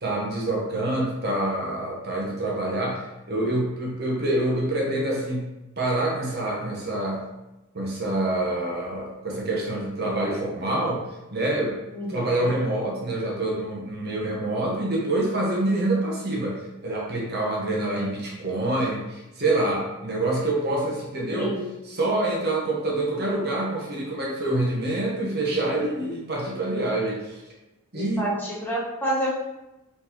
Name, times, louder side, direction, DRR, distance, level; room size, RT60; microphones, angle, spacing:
voice 1, 0.0-5.5 5.8-7.2 7.7-11.8 12.1-21.5 21.9-27.4 27.9-28.3, right 1 dB, 45° right, -2 dB, 0.9 m, -26 dB
voice 2, 11.9-12.6 21.3-21.7 27.9-29.3, right 1 dB, 10° left, -6 dB, 0.9 m, -29 dB
4.1 x 3.9 x 2.9 m, 0.98 s
head